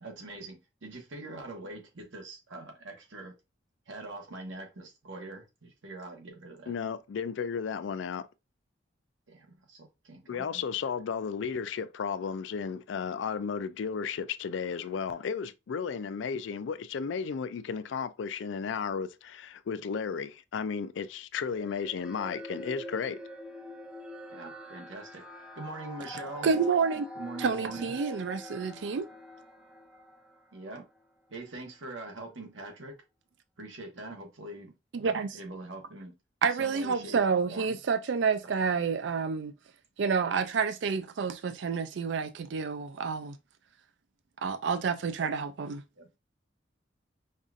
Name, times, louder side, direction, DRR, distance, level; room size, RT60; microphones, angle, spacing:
voice 1, 0.0-3.4 3.9-6.8 9.3-10.6 24.3-26.5 27.2-27.9 30.5-30.9 31.3-33.0 33.6-36.2 36.6-37.2 37.5-37.8 38.4-38.7 46.0-46.1, right 2 dB, 90° right, 1.1 m, -43 dB
voice 2, 6.7-8.3 10.3-23.2, left 6 dB, 75° left, 0.4 m, -34 dB
sound 1, 21.5-31.0, equal, 5° right, 0.6 m, -45 dB
voice 3, 26.4-27.1 27.4-29.1 34.9-35.4 36.4-39.5 40.0-43.4 44.4-45.8, right 5 dB, 70° right, 0.4 m, -29 dB
5.3 x 2.4 x 2.5 m
head